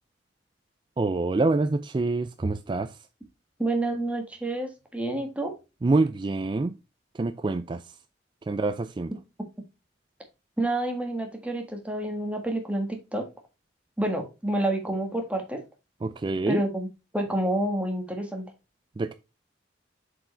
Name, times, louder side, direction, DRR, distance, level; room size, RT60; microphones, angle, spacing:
voice 1, 1.0-2.9 5.8-6.8 7.2-7.8 8.5-9.1 16.0-16.6 19.0-19.1, right 3 dB, 25° right, 0.3 m, -26 dB
voice 2, 3.6-5.5 10.6-13.3 14.0-15.6 16.5-18.4, right 1 dB, 5° right, 1.4 m, -28 dB
7.4 x 4.9 x 3.3 m
head